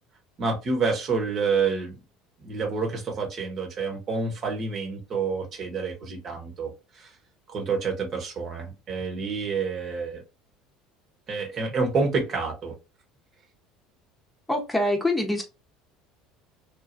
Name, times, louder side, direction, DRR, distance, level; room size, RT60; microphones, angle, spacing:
voice 1, 0.4-2.0 2.4-6.7 6.9-7.1 7.5-10.2 11.3-12.7, right 4 dB, 45° right, 1.1 m, -28 dB
voice 2, 14.5-15.4, left 1 dB, 10° left, 0.9 m, -24 dB
3.0 x 2.3 x 2.5 m
hypercardioid pair, 70°, 0 cm